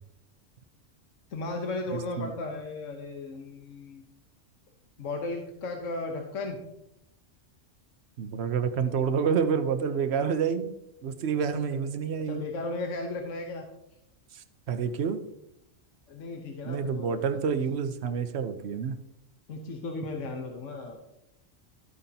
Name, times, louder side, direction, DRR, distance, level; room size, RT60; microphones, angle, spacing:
voice 1, 1.3-4.0 5.0-6.6 11.3-11.4 12.3-13.7 16.1-17.4 19.5-21.0, left 2 dB, 70° left, 2 dB, 1.4 m, -35 dB
voice 2, 8.2-10.7 11.0-12.5 14.3-15.2 16.6-18.9, right 6 dB, 60° right, 9 dB, 1.0 m, -28 dB
13.0 x 9.2 x 2.8 m, 0.83 s
omnidirectional pair, 1.3 m